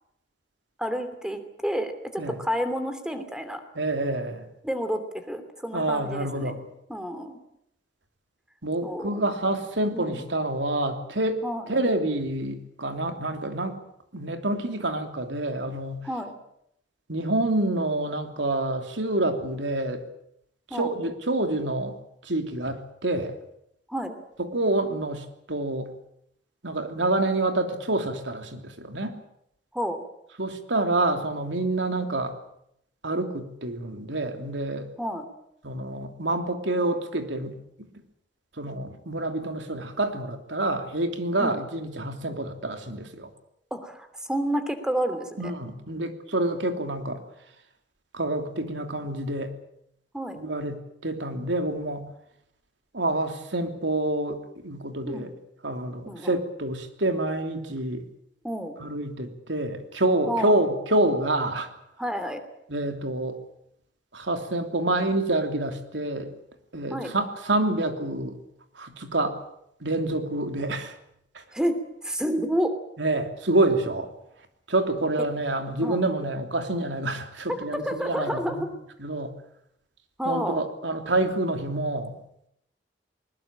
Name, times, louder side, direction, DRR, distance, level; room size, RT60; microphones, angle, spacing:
voice 1, 0.8-3.6 4.6-6.6 6.9-7.4 8.8-9.3 9.9-10.2 11.4-11.7 16.0-16.3 20.7-20.9 23.9-24.1 29.7-30.0 35.0-35.2 41.4-41.6 43.7-45.5 50.1-50.4 55.1-55.3 56.1-56.4 58.4-58.7 60.3-60.6 62.0-62.4 66.9-67.1 71.5-72.7 75.8-76.1 77.7-78.7 80.2-80.6, equal, 5° right, 9 dB, 2.9 m, -30 dB
voice 2, 3.7-4.4 5.7-6.6 8.6-11.4 11.7-13.8 14.1-16.1 17.1-20.0 20.7-22.0 22.2-23.4 24.4-25.9 26.6-29.2 30.4-32.3 33.0-34.9 35.6-37.9 38.6-43.3 45.4-47.2 48.1-49.5 50.4-52.1 52.9-55.3 55.6-58.0 58.8-61.7 62.7-63.4 64.1-66.3 66.7-68.4 68.8-69.4 69.8-71.0 71.3-71.4 73.0-74.1 74.7-78.6 79.0-79.3 80.2-82.1, right 2 dB, 80° right, 6 dB, 3.0 m, -27 dB
20.5 x 20.5 x 8.9 m, 0.76 s
head